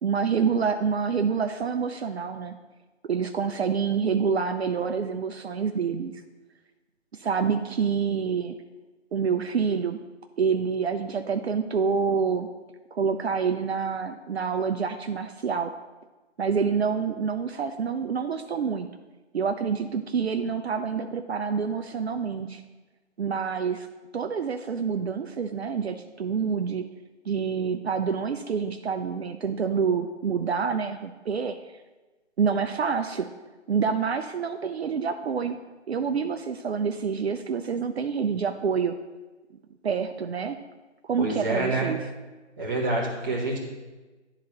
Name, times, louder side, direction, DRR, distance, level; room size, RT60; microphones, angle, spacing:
voice 1, 0.0-2.5 3.0-6.2 7.1-8.5 9.1-10.0 10.4-12.5 12.9-15.7 16.4-18.9 19.3-22.6 23.2-23.9 24.1-26.8 27.3-31.6 32.4-33.3 33.7-35.6 35.9-38.9 39.8-40.6 41.0-42.0, right 6 dB, 65° right, 6 dB, 0.5 m, -27 dB
voice 2, 41.2-41.9 42.6-43.6, right 2 dB, 15° right, -5 dB, 1.1 m, -27 dB
11.5 x 3.8 x 2.9 m, 1.2 s
figure-of-eight pair, 160°, 36 cm